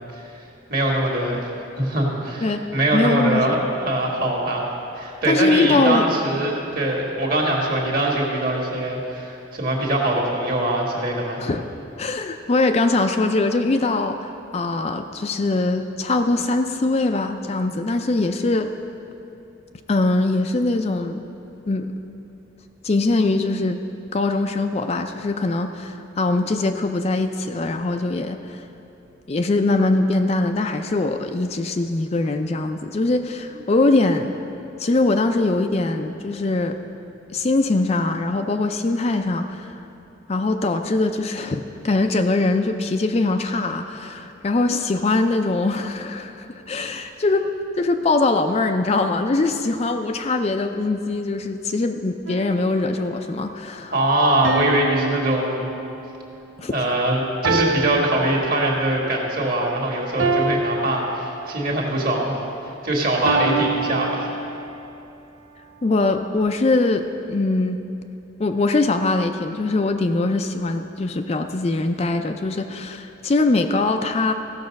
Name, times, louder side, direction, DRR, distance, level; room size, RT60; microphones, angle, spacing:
voice 1, 0.7-1.5 1.8-4.7 5.0-11.5 53.9-55.7 56.7-62.4 62.8-64.3, right 1 dB, 50° right, -1 dB, 1.8 m, -22 dB
voice 2, 2.9-3.5 5.2-6.1 11.4-11.6 12.0-18.7 19.9-21.2 21.7-21.9 22.8-23.8 24.1-28.6 29.3-34.3 34.8-36.8 37.3-39.7 40.3-53.9 56.6-56.7 65.8-67.8 68.4-74.3, left 2 dB, 35° left, 6 dB, 0.4 m, -22 dB
sound 1, 52.3-53.1 54.4-56.3 57.4-59.1 60.2-61.9 63.3-64.9, right 3 dB, 85° right, 0.7 m, -27 dB
15.5 x 6.8 x 5.2 m, 2.8 s
head